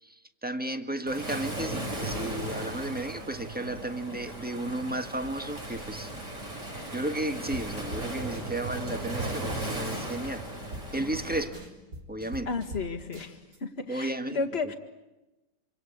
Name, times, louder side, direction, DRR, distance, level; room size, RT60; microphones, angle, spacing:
voice 1, 0.0-6.1 6.9-10.4 10.9-11.6 12.1-12.5 13.9-14.7, right 1 dB, 5° right, 8 dB, 1.4 m, -33 dB
Waves surf, 1.1-11.4, right 1 dB, 45° right, 6.2 m, -36 dB
sound 1, 7.5-7.7 7.9-8.1 8.3-8.8 9.1-9.2 9.5-9.6 9.9-10.4 10.7-12.8 13.1-13.6, equal, 80° right, 4.4 m, -42 dB
voice 2, 12.5-14.8, left 4 dB, 40° left, 5 dB, 2.2 m, -33 dB
26.5 x 26.5 x 8.4 m, 1.0 s
omnidirectional pair, 1.7 m